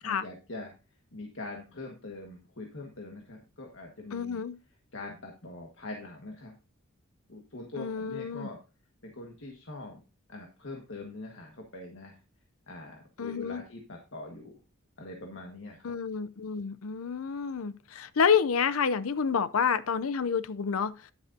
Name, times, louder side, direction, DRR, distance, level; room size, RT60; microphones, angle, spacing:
voice 1, 0.0-0.7 1.1-4.4 4.9-6.6 7.3-8.6 9.0-10.0 10.3-12.2 12.7-14.5 15.0-15.9, left 2 dB, 65° left, 1.7 m, -43 dB
voice 2, 4.1-4.6 7.8-8.5 13.2-13.6 15.8-21.1, left 6 dB, 85° left, 0.6 m, -29 dB
10.5 x 10.5 x 2.7 m
head